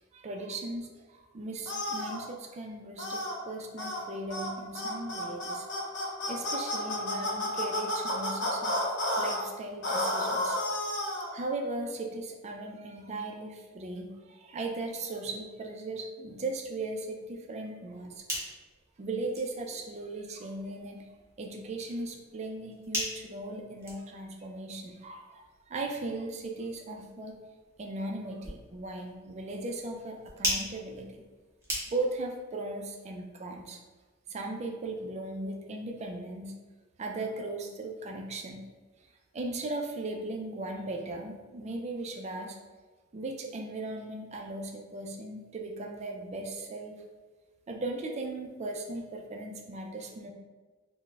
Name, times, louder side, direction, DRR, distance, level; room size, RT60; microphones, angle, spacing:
voice 1, 0.1-5.7 6.3-8.8 9.2-10.6 11.3-18.2 19.0-21.0 21.4-27.3 27.8-31.2 31.9-33.8 34.3-36.5 37.0-38.6 39.3-42.6 43.1-47.0 47.7-50.3, right 2 dB, 35° right, 2 dB, 0.3 m, -37 dB
sound 1, 1.7-2.2 3.0-3.4 3.8-4.0 4.3-4.5 4.8-9.4 9.8-11.3, left 1 dB, 60° left, 0.7 m, -31 dB
sound 2, 17.9-32.3, equal, 15° right, 0.7 m, -41 dB
3.8 x 2.1 x 2.3 m, 1.3 s
head